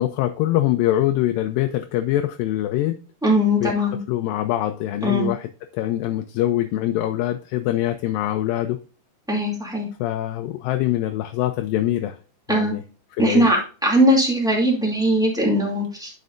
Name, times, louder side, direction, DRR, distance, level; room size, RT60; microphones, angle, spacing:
voice 1, 0.0-3.0 3.6-3.7 4.1-5.5 5.7-8.8 10.0-12.2 12.5-12.8 13.2-13.5, left 13 dB, 80° left, 7 dB, 2.2 m, -23 dB
voice 2, 3.2-4.0 5.0-5.3 9.3-9.8 12.5-12.7 13.2-13.6 13.8-16.1, equal, ahead, -2 dB, 1.5 m, -19 dB
9.3 x 6.5 x 2.5 m, 0.37 s
omnidirectional pair, 4.1 m